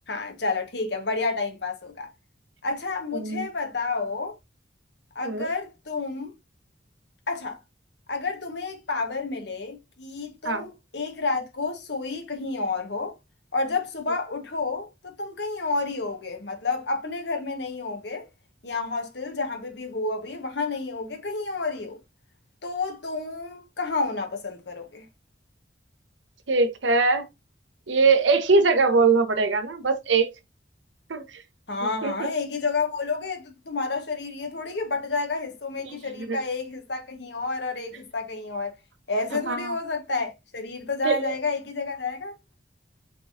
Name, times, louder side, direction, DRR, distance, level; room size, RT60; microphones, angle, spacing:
voice 1, 0.1-2.1 2.6-4.3 5.1-6.3 7.3-7.6 8.1-13.1 13.5-18.3 18.6-22.0 22.6-25.1 31.7-38.7 39.1-42.3, left 3 dB, 65° left, 1.2 m, -30 dB
voice 2, 3.1-3.5 5.2-5.5 10.4-10.6 26.5-27.2 27.9-30.3 31.1-31.4 32.0-32.3 35.9-36.4 39.5-39.7 41.0-41.3, right 4 dB, 85° right, 0.9 m, -22 dB
5.9 x 3.4 x 2.5 m
head